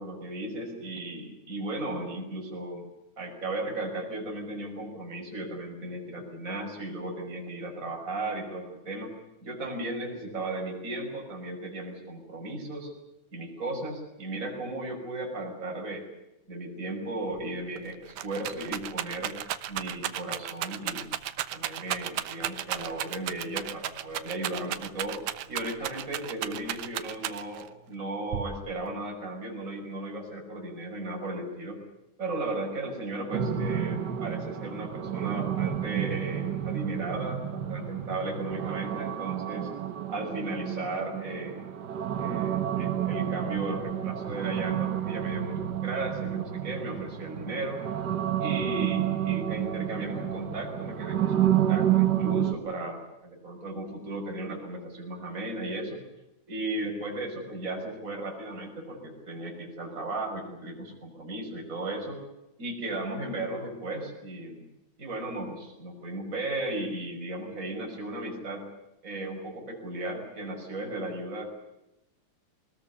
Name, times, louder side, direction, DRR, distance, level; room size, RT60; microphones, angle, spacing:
voice 1, 0.0-2.9 3.2-9.1 9.4-12.9 13.3-16.0 16.5-19.4 19.7-21.1 21.5-25.2 25.5-31.8 32.2-39.7 40.1-41.6 42.2-47.8 48.4-56.0 56.5-62.2 62.6-64.6 65.0-68.6 69.0-71.4, right 2 dB, 25° right, -1 dB, 6.1 m, -35 dB
Rattle, 17.4-17.5 17.8-27.7 28.3-28.9, right 12 dB, 90° right, 2.7 m, -34 dB
sound 1, 33.3-52.5, right 11 dB, 60° right, 1.1 m, -30 dB
22.5 x 20.5 x 9.6 m, 0.92 s
omnidirectional pair, 3.5 m